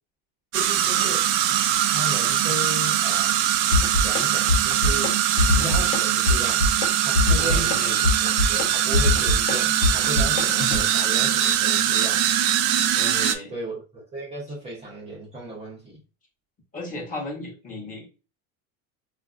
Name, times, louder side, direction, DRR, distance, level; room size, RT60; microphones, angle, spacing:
voice 1, 0.5-1.2 1.9-3.4 4.0-5.2 5.6-6.7 7.0-7.8 8.2-12.3 13.5-16.0, right 1 dB, 15° right, 0.5 m, -35 dB
sound 1, 0.5-13.4, right 11 dB, 65° right, 0.5 m, -22 dB
sound 2, 3.7-4.2 4.5-5.1 5.4-6.0 6.3-6.9 7.1-10.8, left 3 dB, 90° left, 0.8 m, -22 dB
voice 2, 7.4-8.0 12.9-13.5 16.7-18.1, left 2 dB, 20° left, 0.8 m, -35 dB
3.9 x 2.5 x 2.4 m
cardioid pair, 165°, 39 cm